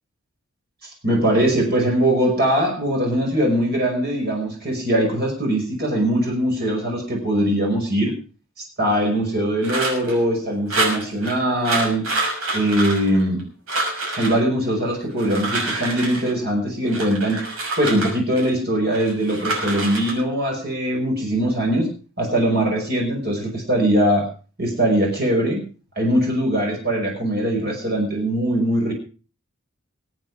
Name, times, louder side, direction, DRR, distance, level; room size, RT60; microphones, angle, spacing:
voice 1, 0.8-8.1 8.8-12.1 12.5-13.5 14.2-17.4 17.8-21.9 22.2-24.3 24.6-25.6 26.0-28.9, right 1 dB, 50° right, 0 dB, 5.5 m, -21 dB
sound 1, 9.6-10.2 10.7-11.3 11.6-13.4 13.7-14.4 15.1-16.3 16.9-18.5 18.9-20.1, right 2 dB, 90° right, 6.1 m, -27 dB
23.0 x 8.9 x 4.9 m, 0.37 s
head